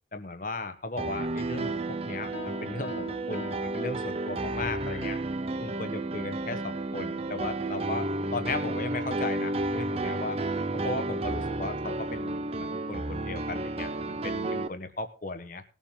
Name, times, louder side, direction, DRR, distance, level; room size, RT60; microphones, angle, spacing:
voice 1, 0.1-5.2 5.6-10.4 10.8-15.6, left 2 dB, 45° left, 8 dB, 1.2 m, -36 dB
Piano, 1.0-14.7, right 2 dB, 35° right, 0.7 m, -32 dB
Piano 2, 2.3-4.7, left 7 dB, 90° left, 2.0 m, -44 dB
20.0 x 7.4 x 3.7 m, 0.36 s
head